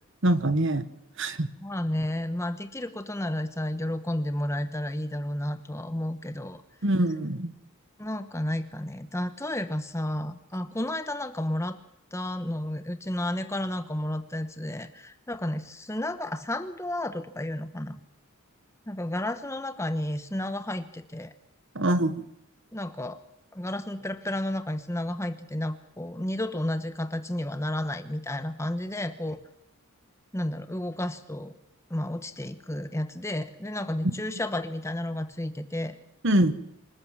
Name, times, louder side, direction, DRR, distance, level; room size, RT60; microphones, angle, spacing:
voice 1, 0.2-0.8 1.2-1.5 6.8-7.5 21.7-22.2 36.2-36.5, right 1 dB, 55° right, 13 dB, 1.3 m, -23 dB
voice 2, 1.6-6.6 8.0-11.8 12.1-18.0 18.9-21.3 22.7-23.2 23.5-29.4 30.3-31.6 31.9-36.0, left 1 dB, 15° left, 10 dB, 1.0 m, -32 dB
26.0 x 14.0 x 7.5 m, 0.83 s
head